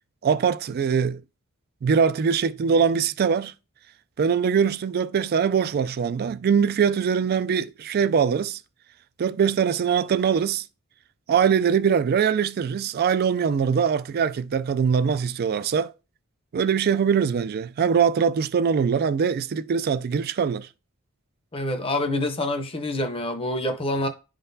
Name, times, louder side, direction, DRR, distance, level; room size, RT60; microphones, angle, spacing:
voice 1, 0.2-1.2 1.8-3.5 4.2-8.6 9.2-10.6 11.3-15.9 16.5-20.7, right 6 dB, 45° right, 0.3 m, -22 dB
voice 2, 21.5-24.1, left 1 dB, 25° left, 0.7 m, -26 dB
11.0 x 3.8 x 2.7 m
head